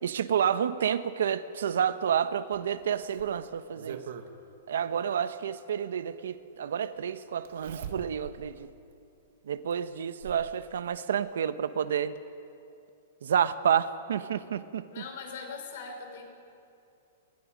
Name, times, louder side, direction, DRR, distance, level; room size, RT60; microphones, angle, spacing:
voice 1, 0.0-4.0 4.7-8.7 9.5-12.1 13.2-14.8, right 8 dB, 80° right, 12 dB, 1.1 m, -29 dB
Zipper (clothing), 2.5-4.3 5.7-5.8 7.4-8.4 8.9-9.0 9.7-10.5 11.7-11.8 12.2-12.3, right 8 dB, 55° right, 1.7 m, -43 dB
voice 2, 14.9-16.2, left 4 dB, 50° left, 3 dB, 5.1 m, -41 dB
28.5 x 23.0 x 5.3 m, 2.6 s
hypercardioid pair, 175°, 0 cm